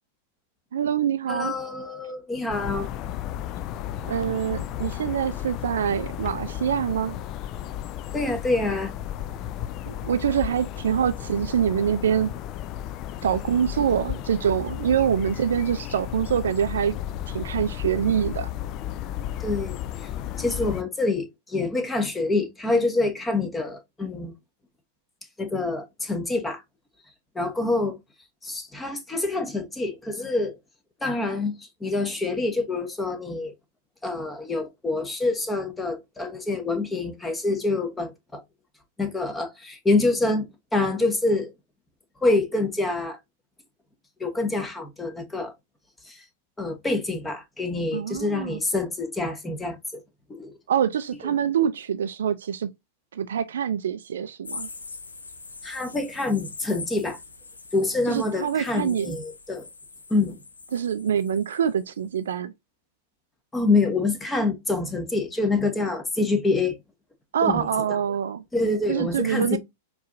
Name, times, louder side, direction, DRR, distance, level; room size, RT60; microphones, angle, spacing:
voice 1, 0.7-1.5 4.0-7.2 9.9-12.3 13.2-17.0 17.3-18.5 47.9-48.6 50.7-52.7 53.1-54.7 58.1-59.1 60.7-62.5 67.3-68.4 68.9-69.6, right 8 dB, 70° right, 0.4 m, -25 dB
voice 2, 1.3-2.9 8.1-8.9 19.4-20.1 20.4-24.3 25.4-26.6 27.3-28.0 28.4-30.6 31.0-33.5 34.0-38.4 39.0-41.5 42.2-43.2 44.2-45.5 46.0-46.2 46.6-50.0 50.3-50.5 55.6-57.2 57.7-59.7 60.1-60.4 63.5-66.8 67.4-67.7 68.5-69.6, left 2 dB, 10° left, 1.1 m, -26 dB
sound 1, 2.5-20.8, left 11 dB, 40° left, 0.3 m, -34 dB
sound 2, 54.4-61.8 62.2-62.3, left 4 dB, 85° left, 0.6 m, -42 dB
4.5 x 3.0 x 2.5 m
figure-of-eight pair, 100°, 0 cm